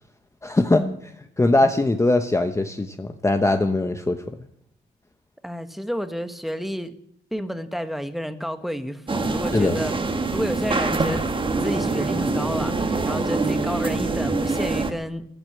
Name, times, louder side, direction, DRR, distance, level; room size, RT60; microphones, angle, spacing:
voice 1, 0.4-0.9 1.4-4.4 9.5-9.8, left 2 dB, 15° left, 7 dB, 1.0 m, -21 dB
voice 2, 5.4-6.9 7.3-10.0 10.3-11.3 11.6-15.3, equal, ahead, 9 dB, 1.4 m, -30 dB
sound 1, 9.1-14.9, right 3 dB, 25° right, 1.6 m, -24 dB
14.0 x 12.0 x 8.0 m, 0.72 s
cardioid pair, 90°, 20 cm